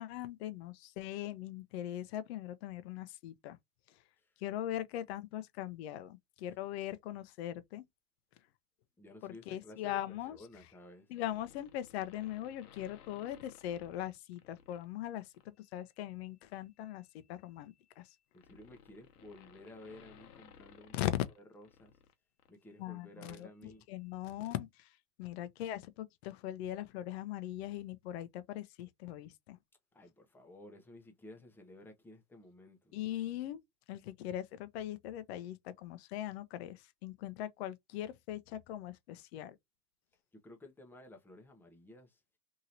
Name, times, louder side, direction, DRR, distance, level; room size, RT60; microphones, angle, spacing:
voice 1, 0.0-3.6 4.4-7.8 9.2-10.4 11.1-18.0 20.9-21.1 22.8-23.5 23.9-24.9 25.2-29.6 32.9-33.6 33.9-39.6, left 12 dB, 45° left, 0.6 m, -40 dB
voice 2, 9.0-10.0 10.3-11.1 18.3-21.0 21.4-21.9 22.5-23.8 29.9-32.9 40.3-42.4, left 1 dB, 5° left, 0.6 m, -54 dB
sound 1, 11.1-14.8 15.3-15.6 16.8-22.1 22.4-22.5, left 8 dB, 75° left, 0.9 m, -59 dB
2.9 x 2.7 x 2.6 m
hypercardioid pair, 105°, 45 cm